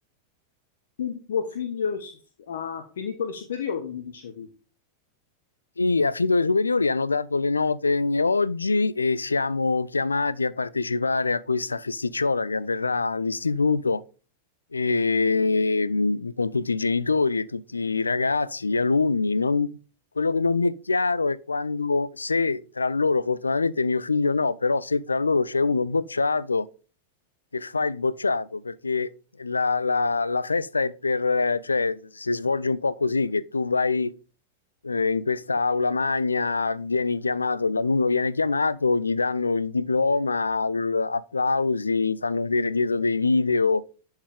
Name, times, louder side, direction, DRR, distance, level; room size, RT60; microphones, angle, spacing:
voice 1, 1.0-2.1 2.5-4.5, left 7 dB, 60° left, 0.9 m, -31 dB
voice 2, 5.8-14.0 14.7-19.7 20.2-26.7 27.5-29.1 29.4-34.1 34.8-43.8, left 3 dB, 80° left, 0.4 m, -24 dB
11.0 x 4.5 x 3.4 m
figure-of-eight pair, 90°, 0 cm